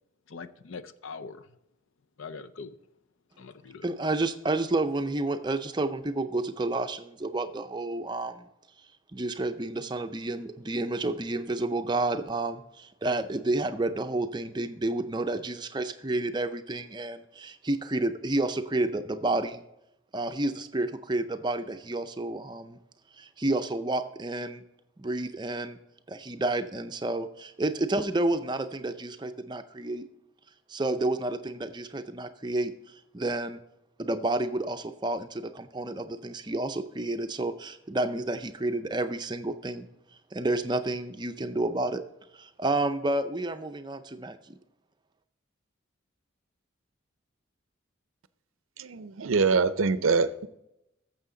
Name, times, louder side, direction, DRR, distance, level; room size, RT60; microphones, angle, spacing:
voice 1, 0.3-1.4 2.2-2.7 3.4-3.8, left 4 dB, 70° left, 0.5 m, -42 dB
voice 2, 3.8-8.5 9.1-19.6 20.1-22.8 23.2-24.6 25.0-25.8 26.1-30.0 30.7-33.6 34.0-39.9 40.3-42.0 42.3-44.6, right 2 dB, 20° right, 0.5 m, -30 dB
voice 3, 48.9-50.5, right 4 dB, 75° right, 0.5 m, -24 dB
14.0 x 7.0 x 3.8 m
head